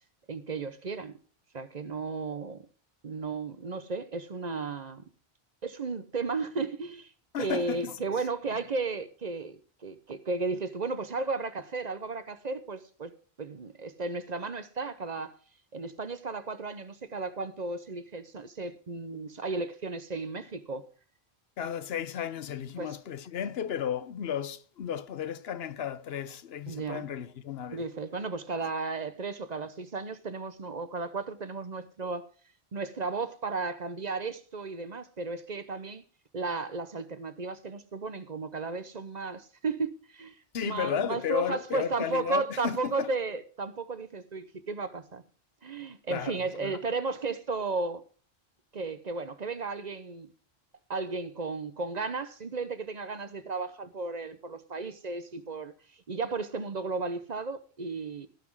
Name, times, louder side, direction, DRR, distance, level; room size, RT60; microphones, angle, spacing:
voice 1, 0.3-1.1 1.5-2.7 3.0-5.1 5.6-13.1 13.4-15.3 15.7-20.9 22.8-22.9 26.7-27.0 27.7-32.3 32.7-36.0 36.3-40.4 40.6-45.2 45.6-48.0 48.7-50.3 50.9-55.7 56.1-58.3, right 3 dB, 45° right, 0.9 m, -34 dB
voice 2, 7.3-8.0 8.5-8.6 21.6-27.9 40.5-43.1 46.1-46.8, left 8 dB, 75° left, 1.0 m, -34 dB
15.5 x 6.0 x 6.1 m
omnidirectional pair, 1.0 m